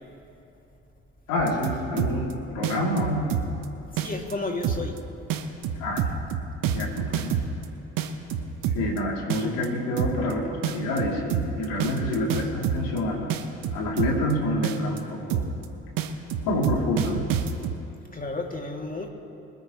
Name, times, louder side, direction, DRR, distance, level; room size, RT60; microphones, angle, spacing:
voice 1, 1.3-3.4 5.8-6.2 6.7-7.3 8.7-13.4 13.7-15.4 16.4-17.2, left 1 dB, 75° left, -3 dB, 3.3 m, -27 dB
sound 1, 1.4-2.3 2.6-3.6 4.0-4.3 4.6-5.0 5.3-7.6 8.0-9.0 9.3-9.7 10.0-10.3 10.6-13.0 13.3-14.3 14.6-15.0 15.3-15.6 16.0-17.8, right 9 dB, 65° right, 1.2 m, -27 dB
voice 2, 3.9-5.0 18.1-19.1, left 2 dB, 25° left, 1 dB, 2.7 m, -32 dB
24.5 x 9.5 x 3.2 m, 2.8 s
hypercardioid pair, 45°, 35 cm